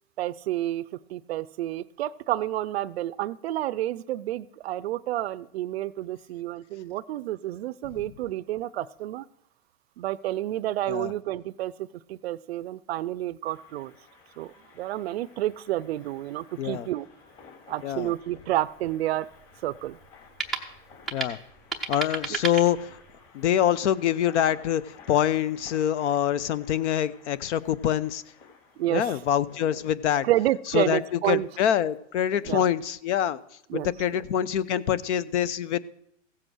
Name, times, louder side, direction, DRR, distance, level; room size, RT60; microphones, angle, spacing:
voice 1, 0.2-9.3 10.0-13.9 14.4-17.1 17.7-19.3 19.6-20.0 22.3-22.4 28.8-29.2 30.2-31.5 32.4-32.7 33.7-34.2, right 14 dB, 55° right, 19 dB, 0.5 m, -30 dB
sound 1, 13.4-29.9, left 5 dB, 35° left, 3.1 m, -54 dB
voice 2, 17.8-18.1 21.1-21.4 21.9-22.9 23.3-28.2 28.9-30.3 30.7-33.4 33.7-35.8, left 10 dB, 65° left, 18 dB, 0.8 m, -25 dB
sound 2, 18.2-23.3, right 5 dB, ahead, 0.4 m, -36 dB
15.5 x 7.6 x 6.2 m, 0.72 s
supercardioid pair, 165°, 38 cm